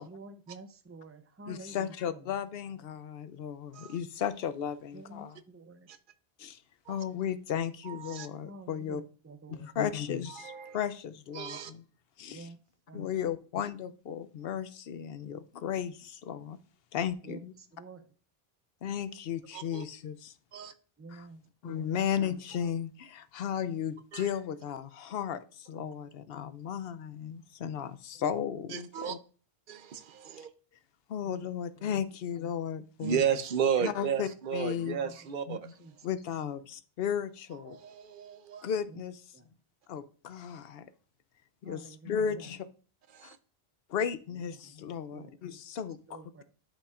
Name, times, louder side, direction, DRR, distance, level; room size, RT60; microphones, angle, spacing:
voice 1, 0.0-2.4 4.9-5.9 8.4-9.7 12.3-12.6 12.9-13.1 17.2-18.1 21.0-22.0 25.7-26.0 28.1-28.2 31.2-31.5 31.8-31.9 34.8-36.1 38.9-39.0 39.3-39.5 41.6-42.6 44.3-44.7 45.1-45.3 46.1-46.4, right 3 dB, 20° right, 0.5 m, -50 dB
voice 2, 1.5-5.4 6.4-6.6 6.9-9.0 9.5-11.8 12.2-12.5 12.9-16.6 16.9-17.5 18.8-20.3 21.1-21.2 21.6-29.2 31.1-33.2 33.8-35.0 35.5-35.7 36.0-37.8 38.6-39.2 39.9-40.9 41.6-42.6 43.2-43.3 43.9-46.0, left 8 dB, 70° left, 0.8 m, -35 dB
voice 3, 7.9-8.3 10.4-10.8 11.3-11.7 19.5-19.8 20.5-20.7 24.1-24.2 28.7-29.2 29.7-30.5 33.0-35.6 37.7-38.7 43.1-43.4, right 8 dB, 60° right, 0.8 m, -33 dB
11.5 x 5.3 x 2.4 m
omnidirectional pair, 1.1 m